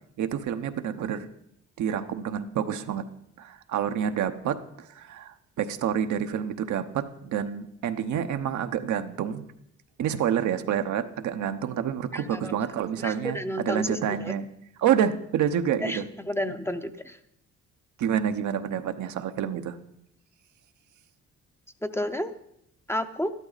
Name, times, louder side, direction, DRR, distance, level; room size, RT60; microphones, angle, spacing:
voice 1, 0.2-1.3 1.8-3.1 3.4-9.5 10.0-14.5 14.8-16.0 18.0-19.8, right 9 dB, 70° right, 8 dB, 0.9 m, -28 dB
voice 2, 12.1-12.5 13.0-14.3 15.8-17.2 21.8-22.3 22.9-23.3, equal, 10° left, 9 dB, 0.7 m, -31 dB
13.0 x 12.0 x 4.0 m, 0.74 s
cardioid pair, 90°, 30 cm